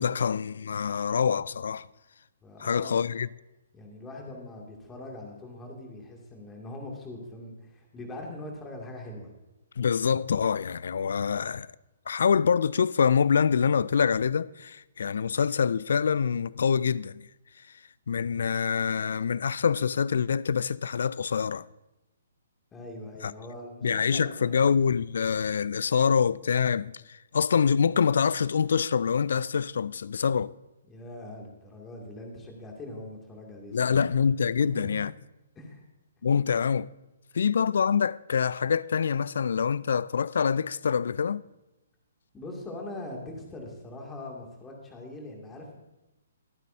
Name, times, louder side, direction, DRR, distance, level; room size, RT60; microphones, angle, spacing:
voice 1, 0.0-1.9 2.6-3.3 9.8-11.7 12.1-17.3 18.1-21.7 23.2-23.3 23.8-30.5 33.7-35.1 36.2-36.9 37.3-41.4, left 6 dB, 60° left, 0.3 m, -25 dB
voice 2, 2.4-2.9 3.7-9.3 22.7-24.6 30.9-34.0 34.6-35.0 35.6-35.8 42.3-45.8, left 1 dB, 15° left, 2.4 m, -42 dB
24.0 x 9.1 x 2.7 m
figure-of-eight pair, 125°, 0 cm